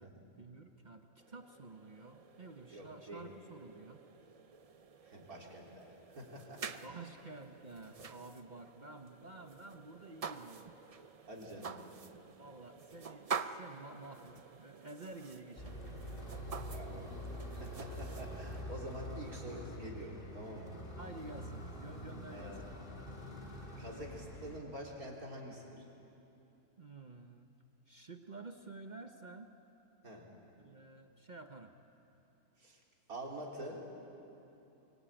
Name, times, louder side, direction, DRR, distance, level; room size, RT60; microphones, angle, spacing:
voice 1, 0.4-4.0 6.8-10.7 12.4-15.8 20.9-22.6 26.8-27.5 27.9-29.5 30.6-31.7, right 3 dB, 35° right, 6 dB, 0.9 m, -51 dB
sound 1, 1.2-18.6, right 6 dB, 55° right, 0.4 m, -48 dB
voice 2, 2.7-3.2 5.0-6.8 8.0-8.1 11.3-11.7 16.7-17.1 17.5-20.7 22.3-22.6 23.8-25.8 30.0-30.3 32.6-32.8 33.1-33.9, right 1 dB, 75° right, -1 dB, 4.0 m, -47 dB
sound 2, 15.6-24.6, left 1 dB, 35° left, 2.5 m, -45 dB
23.5 x 22.5 x 8.9 m, 2.9 s
omnidirectional pair, 1.6 m